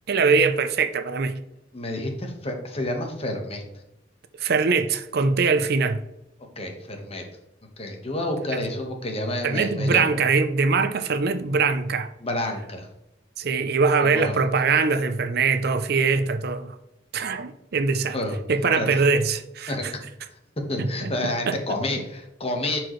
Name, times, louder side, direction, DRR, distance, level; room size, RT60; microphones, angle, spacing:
voice 1, 0.1-1.3 4.4-6.0 8.5-8.6 9.4-12.1 13.4-16.7 17.1-18.2 18.5-19.9 20.8-21.1 21.5-21.8, right 4 dB, 60° right, 0.6 m, -22 dB
voice 2, 1.7-3.6 6.6-7.2 7.8-10.0 12.2-12.9 14.0-14.3 18.1-18.4 18.8-19.0 19.7-19.9 20.7-22.8, left 1 dB, 35° left, 1.3 m, -29 dB
10.5 x 4.6 x 3.1 m
head